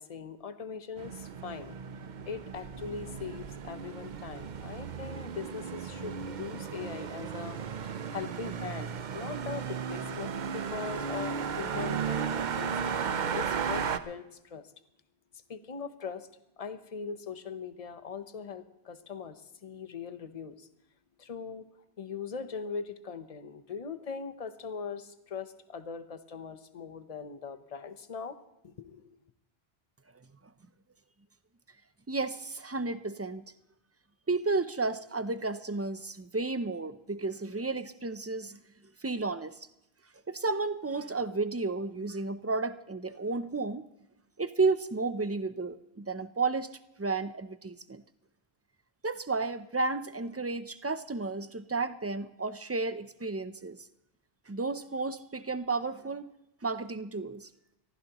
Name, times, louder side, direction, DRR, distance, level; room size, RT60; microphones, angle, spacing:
voice 1, 0.0-14.7 15.3-16.3 16.6-20.7 21.2-28.4 28.6-29.2, left 6 dB, 40° left, 10 dB, 0.9 m, -41 dB
sound 1, 1.0-14.0, right 6 dB, 50° right, 0.7 m, -35 dB
voice 2, 32.1-33.4 34.3-38.6 39.0-39.6 40.3-43.9 44.4-46.7 47.0-48.0 49.0-53.8 54.5-56.2 56.6-57.5, right 3 dB, 25° right, 12 dB, 0.3 m, -32 dB
23.0 x 15.0 x 3.0 m, 0.86 s
omnidirectional pair, 1.1 m